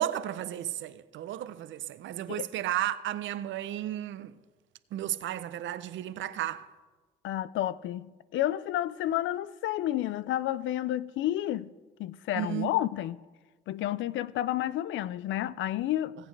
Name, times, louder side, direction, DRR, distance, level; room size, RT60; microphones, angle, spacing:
voice 1, 0.0-4.3 4.9-6.7 12.3-12.7, right 12 dB, 75° right, 0.6 m, -33 dB
voice 2, 7.2-11.7 12.0-13.2 13.7-16.2, left 13 dB, 75° left, 0.4 m, -30 dB
18.0 x 8.4 x 3.3 m
cardioid pair, 90°, 20 cm